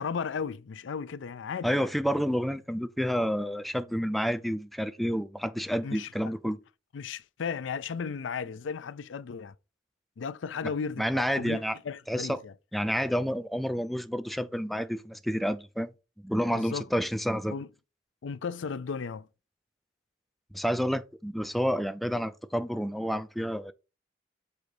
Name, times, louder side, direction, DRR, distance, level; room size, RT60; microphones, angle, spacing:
voice 1, 0.0-1.9 5.8-6.5 6.9-9.5 10.2-12.5 16.5-16.9 17.5-17.7 18.2-19.3, left 6 dB, 80° left, 0.4 m, -35 dB
voice 2, 1.6-6.6 11.0-11.8 12.1-12.4 12.7-15.9 16.2-17.5 20.5-23.7, equal, ahead, 0.4 m, -29 dB
6.8 x 3.8 x 4.7 m
head